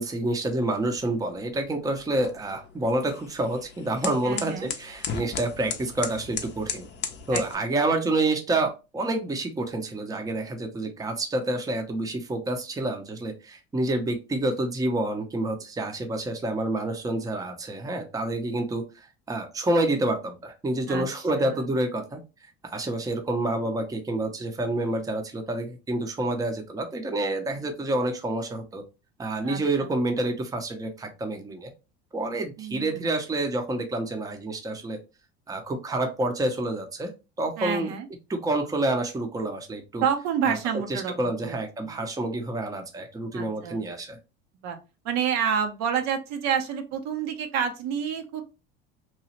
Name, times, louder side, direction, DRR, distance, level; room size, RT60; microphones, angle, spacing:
voice 1, 0.0-6.9 7.3-18.8 19.3-22.2 22.6-28.8 29.2-31.7 32.1-35.0 35.5-37.1 37.4-37.9 38.3-40.0 40.5-40.6 40.9-44.2, right 2 dB, 10° right, 4 dB, 0.6 m, -28 dB
sound 1, 0.8-7.5, left 6 dB, 35° left, 0.6 m, -37 dB
voice 2, 4.2-4.7 7.3-7.4 7.8-7.9 20.9-21.0 21.4-21.6 29.4-29.9 32.6-33.0 37.6-38.1 40.0-41.1 41.4-41.9 43.3-43.9 44.6-44.8 45.0-48.4, right 7 dB, 60° right, 6 dB, 0.7 m, -29 dB
2.9 x 2.3 x 2.9 m, 0.29 s
hypercardioid pair, 80°, 32 cm